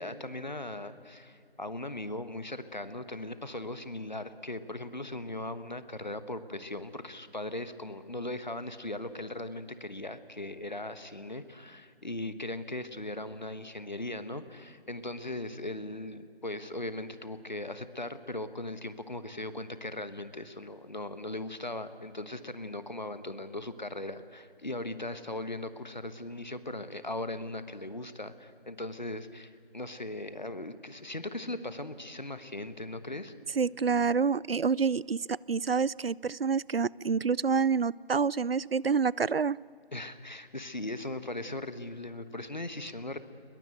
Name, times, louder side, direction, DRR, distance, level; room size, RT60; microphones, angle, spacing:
voice 1, 0.0-33.3 39.9-43.2, left 1 dB, 45° left, 12 dB, 1.2 m, -39 dB
voice 2, 33.6-39.6, right 5 dB, 70° right, 24 dB, 0.5 m, -27 dB
22.0 x 21.0 x 9.2 m, 2.6 s
figure-of-eight pair, 180°, 31 cm